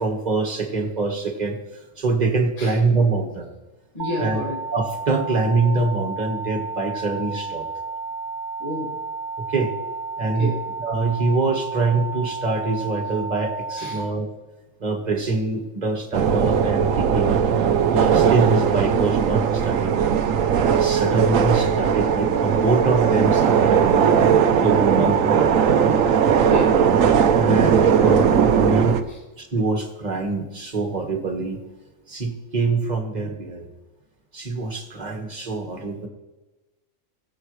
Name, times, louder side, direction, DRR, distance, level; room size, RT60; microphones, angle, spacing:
voice 1, 0.0-1.6 2.0-3.5 4.2-4.4 4.7-7.6 9.5-9.7 10.2-10.5 10.8-14.3 14.8-17.4 17.9-20.0 20.6-24.1 24.6-25.5 27.3-31.6 32.1-33.7 34.3-36.1, right 3 dB, 35° right, 3 dB, 1.7 m, -24 dB
voice 2, 3.9-4.6 8.6-8.9 10.4-10.6 13.8-14.0 26.4-26.8 29.1-29.2, left 2 dB, 30° left, -4 dB, 2.5 m, -29 dB
sound 1, 4.0-14.0, right 3 dB, 65° right, 1.1 m, -32 dB
sound 2, 16.1-29.0, right 7 dB, 85° right, 1.2 m, -18 dB
21.0 x 7.5 x 3.2 m, 1.1 s
omnidirectional pair, 1.3 m